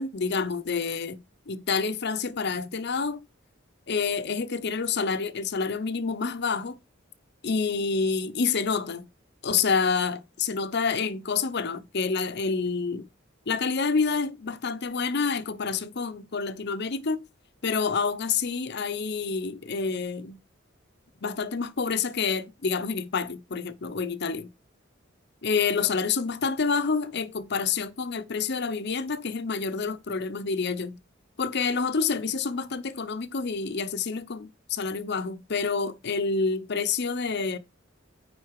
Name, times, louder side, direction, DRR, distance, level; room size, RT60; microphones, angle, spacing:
voice 1, 0.0-3.2 3.9-6.8 7.4-9.1 9.4-13.1 13.5-17.2 17.6-20.4 21.2-24.5 25.4-31.0 31.4-37.6, left 5 dB, 60° left, 0.8 m, -28 dB
9.6 x 4.1 x 4.7 m
head